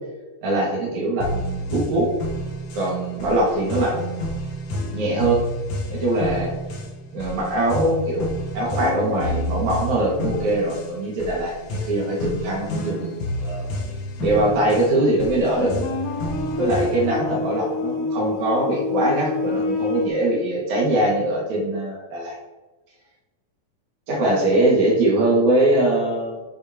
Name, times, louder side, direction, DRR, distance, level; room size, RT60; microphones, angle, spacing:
voice 1, 0.4-2.1 2.7-4.3 4.9-5.4 5.9-6.5 7.1-8.3 8.5-13.7 14.2-15.8 16.6-22.4 24.1-26.4, right 1 dB, 60° right, -4 dB, 3.1 m, -22 dB
sound 1, 1.2-17.2, left 1 dB, 65° left, 2.0 m, -30 dB
sound 2, 8.7-11.2 11.6-12.0 14.5-14.6 15.2-20.1, left 3 dB, 90° left, 2.7 m, -29 dB
9.5 x 6.8 x 2.9 m, 1.2 s
omnidirectional pair, 4.0 m